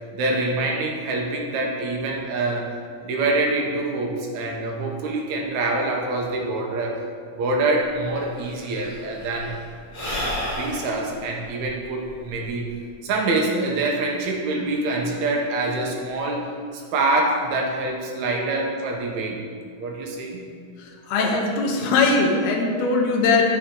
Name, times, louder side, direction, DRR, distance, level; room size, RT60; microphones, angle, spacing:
voice 1, 0.1-2.7 3.0-7.0 7.4-9.5 10.5-12.7 13.0-16.5 16.9-19.4 19.8-20.4, right 2 dB, 70° right, 0 dB, 1.9 m, -25 dB
Sigh / Breathing, 7.9-8.0 8.2-12.9, equal, 40° left, 0.7 m, -32 dB
voice 2, 20.8-23.4, left 3 dB, 75° left, 0 dB, 1.6 m, -21 dB
9.8 x 4.3 x 3.7 m, 2.2 s
omnidirectional pair, 3.9 m